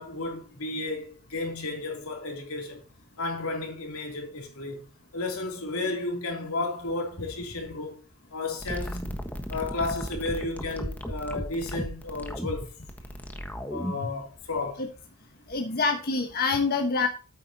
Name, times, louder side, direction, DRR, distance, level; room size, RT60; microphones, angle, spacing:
voice 1, 0.0-2.8 3.2-4.8 5.1-8.0 8.3-9.2 9.5-12.7 13.7-14.8, left 2 dB, 85° left, 3.0 m, -33 dB
sound 1, 8.6-14.2, equal, 10° left, 1.3 m, -35 dB
voice 2, 15.5-17.1, left 4 dB, 45° left, 1.2 m, -26 dB
9.2 x 8.5 x 2.8 m
head